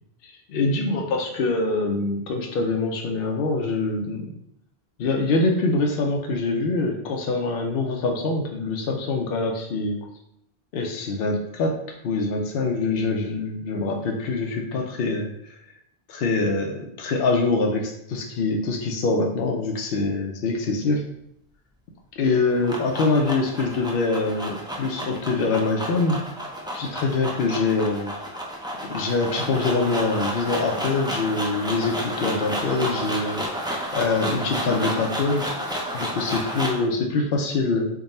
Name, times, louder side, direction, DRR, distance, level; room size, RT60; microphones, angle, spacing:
voice 1, 0.2-4.2 5.0-10.0 10.7-11.8 12.0-15.5 16.1-21.0 22.2-26.2 26.7-28.1 28.9-33.4 33.9-35.5 35.9-37.9, left 3 dB, 70° left, 1 dB, 0.8 m, -24 dB
sound 1, 22.3-36.9, equal, 5° right, 0.3 m, -31 dB
3.6 x 2.2 x 4.0 m, 0.74 s
omnidirectional pair, 1.0 m